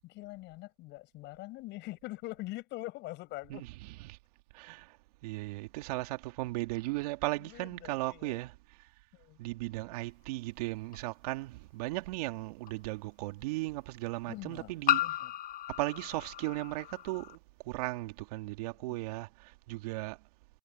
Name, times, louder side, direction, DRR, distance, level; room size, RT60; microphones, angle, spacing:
voice 1, 0.0-3.6 7.4-8.4 9.1-9.4 14.3-15.3 18.9-19.0, left 19 dB, 65° left, 7.5 m, -44 dB
voice 2, 3.5-4.2 4.5-5.0 5.2-8.6 9.4-15.0 15.7-17.4 17.6-20.2, right 21 dB, 75° right, 2.5 m, -36 dB
sound 1, 10.9-11.0 12.7-12.8 14.9-17.4, left 13 dB, 45° left, 1.2 m, -33 dB
hypercardioid pair, 65°, 20 cm